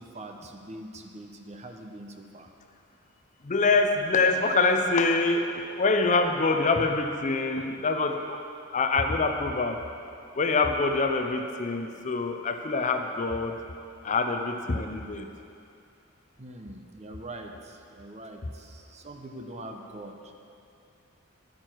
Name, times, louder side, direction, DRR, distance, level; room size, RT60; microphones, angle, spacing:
voice 1, 0.0-2.5 16.4-20.3, right 1 dB, 30° right, 4 dB, 0.8 m, -43 dB
voice 2, 3.5-8.4 8.7-9.8 10.4-13.5 14.0-15.3, left 3 dB, 35° left, 6 dB, 0.6 m, -25 dB
11.5 x 9.0 x 4.6 m, 2.5 s
head